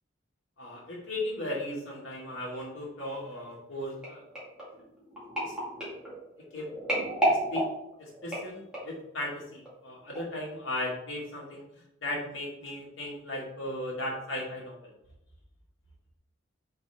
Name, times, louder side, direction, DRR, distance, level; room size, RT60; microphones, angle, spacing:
voice 1, 0.6-4.2 5.4-5.5 6.5-6.7 7.2-7.7 8.0-11.6 12.0-14.9, left 1 dB, 80° left, -3 dB, 2.2 m, -36 dB
sound 1, 4.0-9.1 9.7-9.9 10.2-10.3, right 1 dB, 5° right, 2.3 m, -32 dB
5.0 x 4.6 x 4.4 m, 0.80 s
head